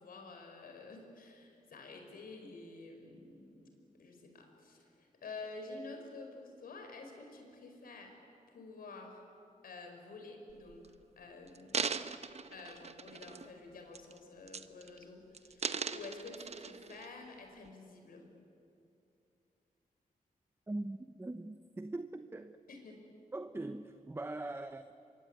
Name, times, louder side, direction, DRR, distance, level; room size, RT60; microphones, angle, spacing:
voice 1, 0.0-8.2 8.5-9.2 9.6-12.2 12.5-18.3 22.7-23.0, left 3 dB, 85° left, 4.9 m, -50 dB
sound 1, 10.5-10.9 11.5-13.6 13.9-14.2 14.5-15.0 15.3-17.1 17.6-17.7, right 5 dB, 45° right, 1.0 m, -39 dB
voice 2, 20.7-22.6 23.3-24.9, right 2 dB, 15° right, 0.8 m, -41 dB
25.5 x 23.5 x 9.5 m
wide cardioid pair, 100°, 15 cm